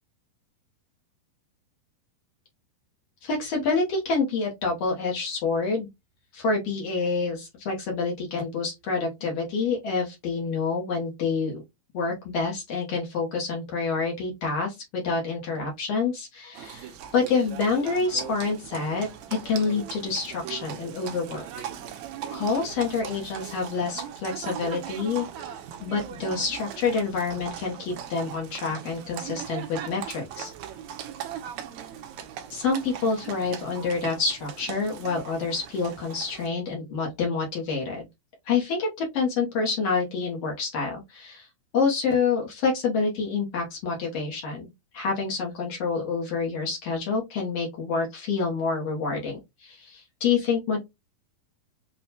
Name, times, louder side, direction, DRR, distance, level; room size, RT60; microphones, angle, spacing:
voice 1, 3.2-5.9 6.3-11.6 11.9-19.1 19.4-21.4 22.3-25.3 25.8-30.5 32.5-38.1 38.4-41.5 41.7-50.8, left 4 dB, 75° left, -1 dB, 1.5 m, -27 dB
Livestock farm animals working animals, 16.5-36.5, right 9 dB, 80° right, 1.7 m, -39 dB
6.1 x 2.1 x 2.7 m, 0.20 s
omnidirectional pair, 4.1 m